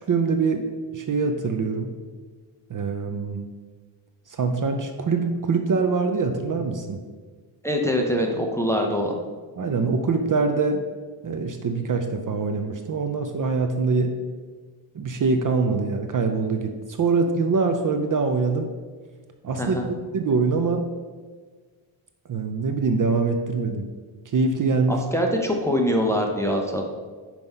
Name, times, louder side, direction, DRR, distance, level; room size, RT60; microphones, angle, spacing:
voice 1, 0.0-1.9 2.7-3.5 4.3-7.0 9.6-10.8 11.2-14.1 15.0-18.7 19.4-19.8 20.1-20.9 22.3-23.8 24.3-25.0, right 4 dB, 45° right, 6 dB, 0.5 m, -24 dB
voice 2, 7.6-9.2 19.6-19.9 24.9-26.8, equal, 5° left, 1 dB, 0.5 m, -23 dB
5.5 x 4.5 x 5.4 m, 1.4 s
wide cardioid pair, 155°, 48 cm